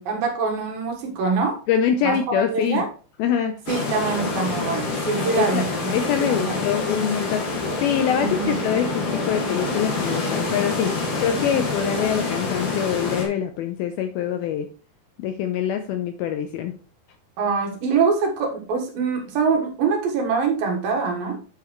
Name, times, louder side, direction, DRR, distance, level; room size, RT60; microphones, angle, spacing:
voice 1, 0.0-1.6 2.0-2.9 3.7-6.6 8.2-8.6 17.4-21.4, right 5 dB, 65° right, 1 dB, 2.9 m, -24 dB
voice 2, 1.7-2.8 3.2-3.6 5.4-10.9 11.2-14.7 15.2-16.7, left 8 dB, 80° left, 7 dB, 2.2 m, -24 dB
sound 1, 3.7-13.3, left 3 dB, 55° left, 3.5 m, -27 dB
8.8 x 7.4 x 3.1 m, 0.37 s
omnidirectional pair, 4.9 m